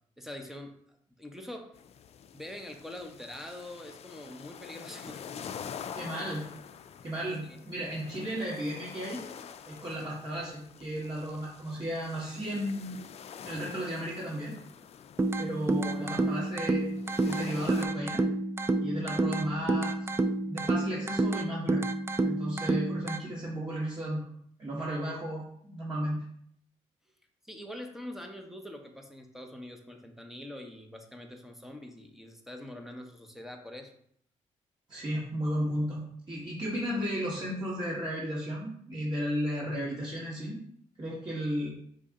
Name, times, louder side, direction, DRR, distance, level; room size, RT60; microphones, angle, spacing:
voice 1, 0.2-0.8 1.2-1.7 2.3-5.4 7.4-7.6 27.4-33.9, left 1 dB, 5° right, 4 dB, 0.8 m, -44 dB
sound 1, 1.7-17.9, left 8 dB, 55° left, 0.4 m, -46 dB
voice 2, 5.9-6.4 7.0-9.2 9.7-12.9 13.4-14.5 15.4-16.9 17.2-18.2 18.8-19.9 20.4-21.8 22.2-24.2 24.6-26.2 34.9-36.0 36.3-40.6 41.0-41.7, equal, 35° right, -6 dB, 1.5 m, -34 dB
sound 2, 15.2-23.2, right 2 dB, 20° right, 0.4 m, -29 dB
5.2 x 2.7 x 3.7 m, 0.67 s
cardioid pair, 70°, 13 cm